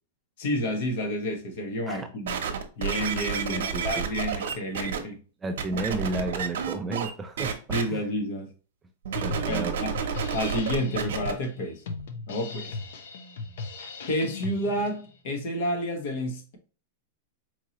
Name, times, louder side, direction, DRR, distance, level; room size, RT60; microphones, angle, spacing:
voice 1, 0.4-2.4 2.8-5.2 7.7-8.5 9.5-9.9 10.3-11.8 12.3-12.8 14.0-16.6, equal, 50° left, 1.0 m, -30 dB
sound 1, 2.3-5.0 5.6-7.1 7.4-7.8 9.0-11.3 12.0-12.1, right 7 dB, 75° right, 0.8 m, -30 dB
voice 2, 3.5-4.1 5.0-5.1 5.4-7.6 7.9-8.0 9.2-9.8, right 2 dB, 10° right, 0.3 m, -32 dB
Drum kit, 9.1-15.1, left 4 dB, 70° left, 0.7 m, -38 dB
4.5 x 2.8 x 2.9 m
supercardioid pair, 170°, 0 cm